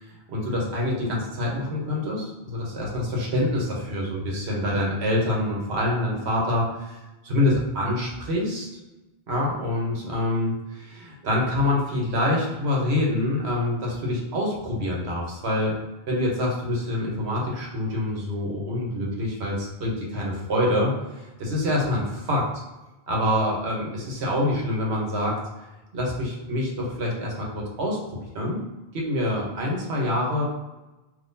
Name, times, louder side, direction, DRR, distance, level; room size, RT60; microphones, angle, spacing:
voice 1, 0.3-7.0 7.2-8.7 9.3-15.7 16.1-20.9 21.4-22.4 23.1-25.7 25.9-28.6 28.9-30.4, left 1 dB, 85° right, -2 dB, 1.2 m, -26 dB
3.7 x 2.6 x 2.6 m, 1.1 s
omnidirectional pair, 1.1 m